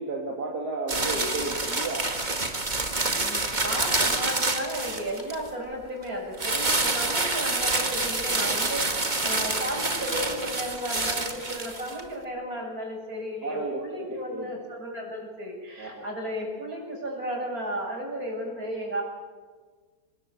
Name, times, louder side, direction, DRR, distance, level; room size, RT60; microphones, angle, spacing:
voice 1, 0.0-2.0 13.4-14.5 15.8-16.0, right 2 dB, 85° right, -1 dB, 3.3 m, -33 dB
sound 1, 0.9-5.5 6.4-12.0, right 2 dB, 30° right, 2.1 m, -27 dB
voice 2, 3.1-19.0, equal, 65° right, 0 dB, 7.8 m, -34 dB
25.0 x 20.0 x 8.5 m, 1.4 s
omnidirectional pair, 1.7 m